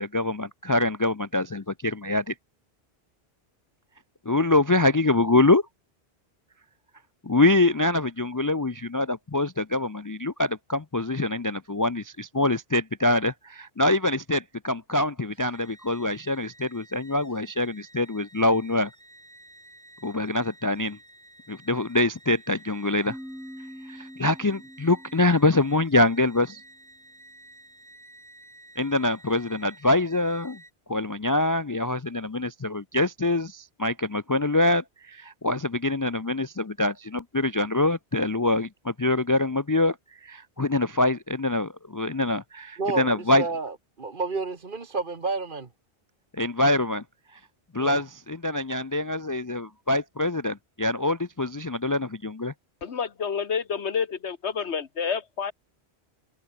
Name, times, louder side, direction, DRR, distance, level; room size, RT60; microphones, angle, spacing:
voice 1, 0.0-2.3 4.3-5.6 7.2-18.9 20.0-21.0 21.5-23.2 23.9-26.6 28.8-30.6 30.9-40.0 40.2-43.5 46.4-47.0 47.7-52.5, left 2 dB, 30° left, 0.3 m, -25 dB
sound 1, 15.3-30.7, right 1 dB, 25° right, 4.7 m, -52 dB
sound 2, 23.1-26.7, equal, ahead, 1.8 m, -45 dB
voice 2, 42.8-45.7 47.8-48.0, right 4 dB, 50° right, 1.7 m, -30 dB
voice 3, 52.8-55.5, left 6 dB, 85° left, 1.6 m, -29 dB
omnidirectional pair, 1.1 m